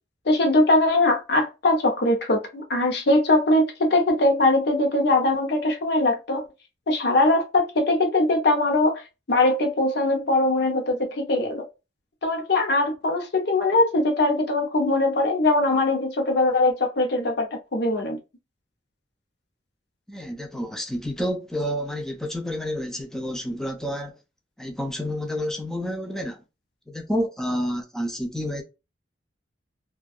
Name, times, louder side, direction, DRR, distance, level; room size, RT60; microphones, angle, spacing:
voice 1, 0.3-6.4 6.9-9.0 9.3-11.6 12.2-18.2, left 2 dB, 60° left, 0.7 m, -21 dB
voice 2, 20.1-24.2 24.6-26.4 26.9-28.6, equal, 5° left, 0.4 m, -29 dB
2.6 x 2.2 x 2.3 m
head